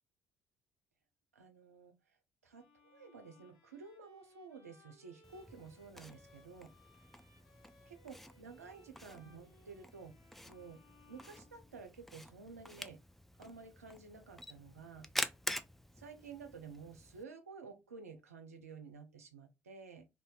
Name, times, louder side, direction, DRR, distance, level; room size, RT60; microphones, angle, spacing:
voice 1, 1.3-2.2 2.4-6.7 7.9-10.2 10.5-10.8 11.1-13.0 13.4-15.1 16.0-20.1, right 5 dB, 80° right, 0.5 m, -52 dB
Bowed string instrument, 2.5-12.2, left 2 dB, 65° left, 1.2 m, -66 dB
Camera, 5.2-17.2, equal, 5° left, 0.4 m, -47 dB
2.6 x 2.4 x 3.8 m
figure-of-eight pair, 50°, 8 cm